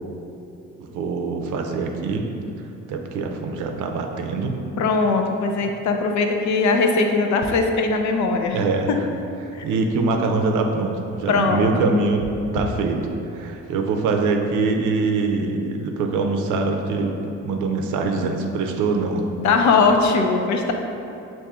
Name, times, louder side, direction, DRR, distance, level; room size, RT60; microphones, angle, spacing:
voice 1, 0.8-2.3 2.9-4.6 8.5-8.9 9.6-12.3 12.5-13.0 13.3-17.2 17.4-19.3, right 3 dB, 90° right, 4 dB, 0.5 m, -23 dB
voice 2, 4.8-8.6 9.5-9.7 11.3-11.7 19.4-20.7, left 4 dB, 70° left, 4 dB, 0.5 m, -20 dB
5.6 x 2.6 x 3.5 m, 2.8 s
cardioid pair, 90°, 30 cm